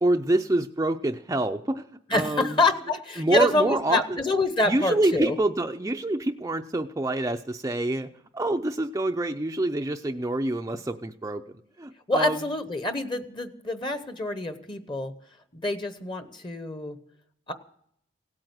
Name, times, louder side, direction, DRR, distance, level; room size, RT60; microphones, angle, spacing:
voice 1, 0.0-2.6 3.2-4.2 4.7-8.1 8.3-11.4 11.8-12.4, right 2 dB, 15° right, 5 dB, 0.5 m, -26 dB
voice 2, 2.1-5.4 12.1-15.1 15.5-17.0 17.5-17.6, left 2 dB, 25° left, 10 dB, 0.9 m, -26 dB
17.0 x 8.8 x 8.0 m, 0.68 s
head